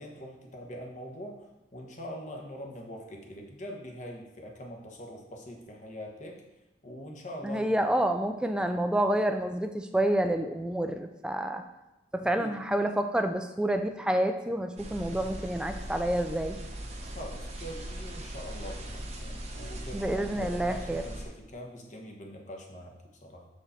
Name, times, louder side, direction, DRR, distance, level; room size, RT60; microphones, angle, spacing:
voice 1, 0.0-6.4 6.8-7.7 12.2-12.5 17.0-22.9 23.2-23.4, equal, 40° left, 1 dB, 1.1 m, -43 dB
voice 2, 7.4-11.6 12.1-16.6 19.9-21.0, right 1 dB, 5° right, 6 dB, 0.4 m, -28 dB
sound 1, 14.8-21.3, right 1 dB, 35° right, 0.9 m, -40 dB
6.6 x 4.8 x 4.3 m, 0.97 s
head